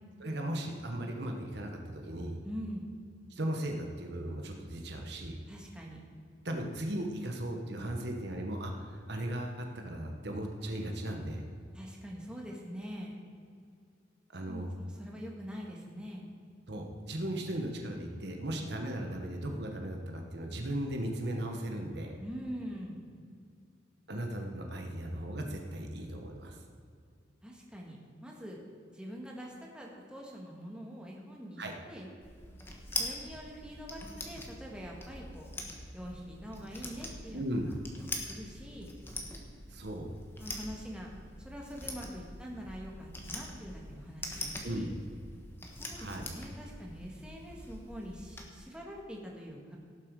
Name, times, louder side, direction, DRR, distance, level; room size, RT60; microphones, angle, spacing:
voice 1, 0.2-2.4 3.3-5.4 6.4-11.4 14.3-14.7 16.7-22.1 24.1-26.6 31.6-31.7 37.3-37.7 39.7-40.1 44.6-44.9 45.9-46.2, right 1 dB, 60° right, 3 dB, 1.3 m, -37 dB
voice 2, 2.4-2.9 5.5-6.0 11.7-13.2 14.5-16.3 22.2-23.0 27.4-28.6 28.9-32.1 33.0-35.5 35.9-37.4 38.0-38.9 40.4-41.1 41.4-44.9 45.7-49.8, equal, 5° right, -2 dB, 1.8 m, -44 dB
sound 1, 32.2-48.4, left 1 dB, 10° left, 1.3 m, -43 dB
17.5 x 7.5 x 4.8 m, 2.3 s
head